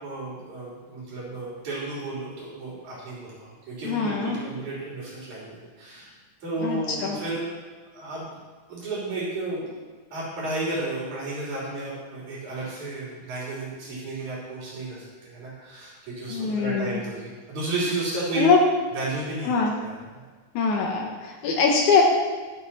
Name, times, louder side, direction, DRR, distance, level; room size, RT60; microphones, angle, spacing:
voice 1, 0.0-6.1 6.4-7.4 7.9-8.3 8.7-9.7 10.1-18.5 18.9-20.2, right 2 dB, 75° right, -6 dB, 4.6 m, -32 dB
voice 2, 3.8-4.4 6.6-7.2 16.3-17.0 18.4-18.6 19.4-19.7 20.5-22.0, left 5 dB, 80° left, 0 dB, 2.6 m, -22 dB
12.0 x 11.0 x 4.2 m, 1.3 s
omnidirectional pair, 3.4 m